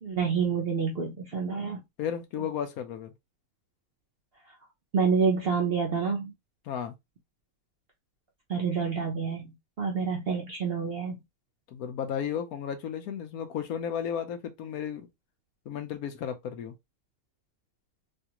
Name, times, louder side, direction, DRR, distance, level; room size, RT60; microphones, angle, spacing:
voice 1, 0.0-1.8 4.9-6.3 8.5-11.2, right 5 dB, 55° right, 0.6 m, -28 dB
voice 2, 2.0-3.1 6.6-6.9 11.7-15.1 15.7-16.7, left 8 dB, 70° left, 1.0 m, -34 dB
3.3 x 2.3 x 2.8 m
omnidirectional pair, 1.7 m